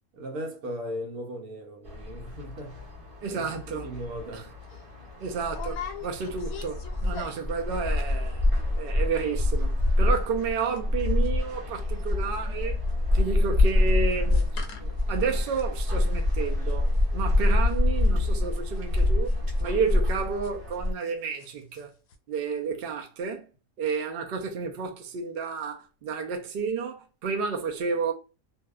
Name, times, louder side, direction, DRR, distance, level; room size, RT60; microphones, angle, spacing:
voice 1, 0.1-2.8 3.3-4.5, equal, 90° right, 1.2 m, -37 dB
sound 1, 1.8-20.9, left 2 dB, 25° right, 1.0 m, -26 dB
voice 2, 3.2-3.9 4.3-4.4 5.2-8.5 8.8-12.8 13.1-14.5 14.8-16.9 17.1-21.9 22.3-23.5 23.8-28.1, right 5 dB, 65° right, 0.6 m, -31 dB
sound 2, 4.1-4.3 4.6-4.8 5.5-7.6 7.9-8.3 8.5-8.6 8.9-9.2 9.5-11.8 12.1-21.1 21.4-21.8 22.1-22.2, left 6 dB, 75° left, 1.0 m, -43 dB
2.7 x 2.1 x 2.3 m
omnidirectional pair, 1.5 m